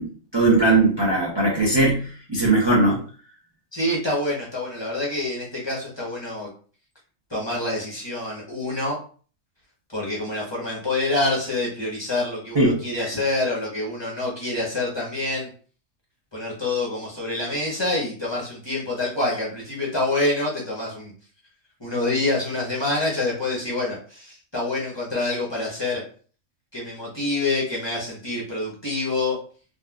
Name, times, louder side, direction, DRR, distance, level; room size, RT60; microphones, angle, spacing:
voice 1, 0.0-3.0 12.5-12.8, right 2 dB, 35° right, -5 dB, 0.4 m, -19 dB
voice 2, 3.7-6.5 7.3-9.0 9.9-15.5 16.3-21.1 21.8-26.0 26.7-29.4, left 2 dB, 25° left, -4 dB, 0.8 m, -26 dB
3.7 x 2.3 x 2.3 m, 0.41 s
omnidirectional pair, 1.4 m